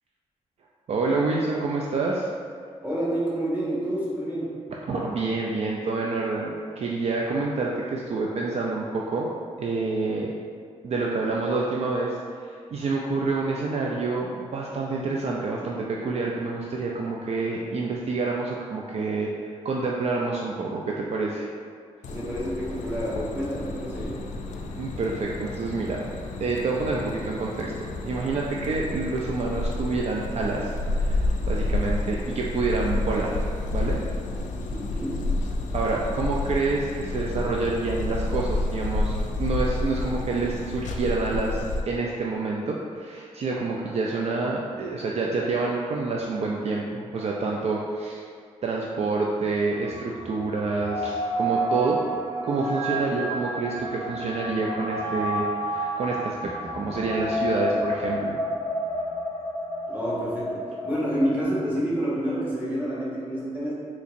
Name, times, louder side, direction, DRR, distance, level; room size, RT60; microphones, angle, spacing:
voice 1, 0.9-2.3 4.9-9.3 9.6-10.3 10.8-21.5 24.8-26.0 26.4-30.7 31.0-33.4 33.7-34.0 35.7-48.2 48.6-52.0 52.4-58.4, right 3 dB, 55° right, -2 dB, 0.4 m, -28 dB
voice 2, 2.8-4.5 22.0-24.2 34.7-35.2 59.9-63.7, equal, 15° right, -8 dB, 1.3 m, -28 dB
sound 1, 22.0-41.8, left 2 dB, 75° left, 0.4 m, -30 dB
sound 2, 49.7-61.4, right 1 dB, 85° right, 1.2 m, -30 dB
4.1 x 2.9 x 2.5 m, 2.1 s
cardioid pair, 85°, 13 cm